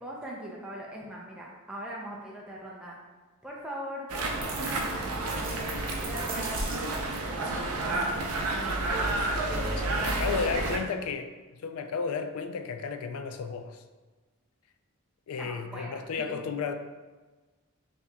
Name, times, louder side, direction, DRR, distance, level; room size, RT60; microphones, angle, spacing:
voice 1, 0.0-3.0 3.4-5.0 6.0-6.6 7.2-7.6 7.8-9.1 9.5-10.8 15.4-16.3, equal, 5° right, -4 dB, 0.4 m, -41 dB
sound 1, 4.1-10.8, right 2 dB, 80° right, 0.5 m, -30 dB
sound 2, 4.4-7.2, right 3 dB, 40° right, 0.7 m, -41 dB
voice 2, 9.8-11.3 11.6-13.8 15.3-16.8, left 5 dB, 80° left, 8 dB, 0.3 m, -33 dB
5.6 x 2.8 x 2.2 m, 1.3 s
head